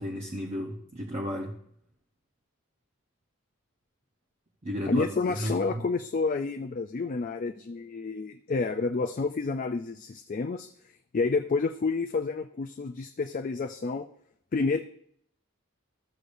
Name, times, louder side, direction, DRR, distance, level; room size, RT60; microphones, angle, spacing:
voice 1, 0.0-1.6 4.6-5.8, equal, 30° right, 0 dB, 0.7 m, -34 dB
voice 2, 4.9-10.7 11.1-14.1 14.5-14.8, left 4 dB, 40° left, 7 dB, 0.4 m, -29 dB
13.5 x 6.5 x 2.6 m, 0.67 s
head